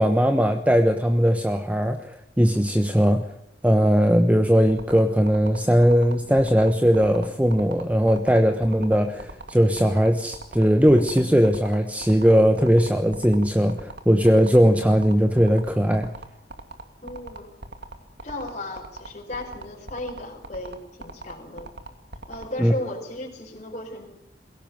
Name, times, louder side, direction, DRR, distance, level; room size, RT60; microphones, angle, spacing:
voice 1, 0.0-3.3 3.6-16.1 22.6-22.7, equal, 10° right, 6 dB, 1.1 m, -19 dB
sound 1, 4.7-22.5, right 3 dB, 75° right, 2.6 m, -39 dB
voice 2, 17.0-17.5 18.2-21.7 22.3-24.1, left 1 dB, 40° left, -1 dB, 4.9 m, -35 dB
22.5 x 17.5 x 9.2 m, 0.74 s
head